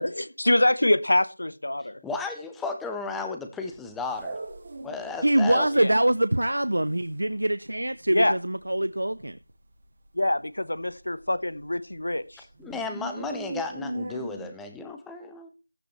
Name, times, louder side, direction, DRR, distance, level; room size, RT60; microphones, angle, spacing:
voice 1, 0.0-2.0 5.8-5.9 8.1-8.3 10.1-12.4, left 1 dB, 75° left, 1.0 m, -25 dB
voice 2, 2.0-4.4 4.8-5.7 12.6-15.5, left 4 dB, ahead, 0.5 m, -34 dB
sound 1, 3.7-5.2 5.6-5.7 5.9-8.1 8.4-8.6 9.0-9.5 9.8-9.9 10.3-10.4 10.8-12.2 12.4-14.5, right 2 dB, 25° right, 1.7 m, -38 dB
voice 3, 5.2-9.4, right 1 dB, 85° right, 0.5 m, -24 dB
15.0 x 10.5 x 3.1 m
figure-of-eight pair, 175°, 0 cm